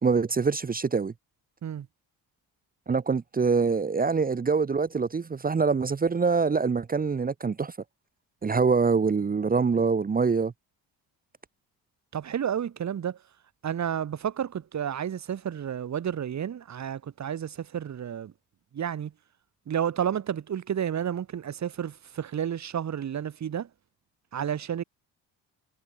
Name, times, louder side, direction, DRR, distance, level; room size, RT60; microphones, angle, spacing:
voice 1, 0.0-1.1 2.9-7.7 8.4-10.5, right 5 dB, 25° right, 0.8 m, -24 dB
voice 2, 12.1-13.2 13.6-18.3 18.7-19.1 19.7-23.7 24.3-24.8, right 9 dB, 45° right, 1.7 m, -31 dB
cardioid pair, 90°, 37 cm